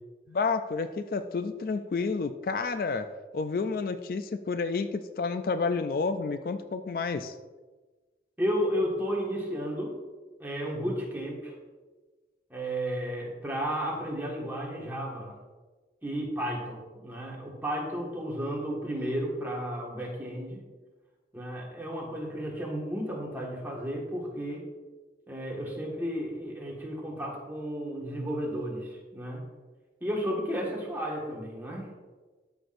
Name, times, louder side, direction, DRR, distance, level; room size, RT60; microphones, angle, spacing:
voice 1, 0.3-3.1 3.3-7.3, left 4 dB, 55° left, 9 dB, 0.3 m, -30 dB
voice 2, 8.4-9.9 10.4-11.5 12.5-15.3 16.0-20.6 21.3-24.6 25.3-29.4 30.0-31.9, equal, 10° right, -3 dB, 1.7 m, -33 dB
13.0 x 6.0 x 2.6 m, 1.3 s
head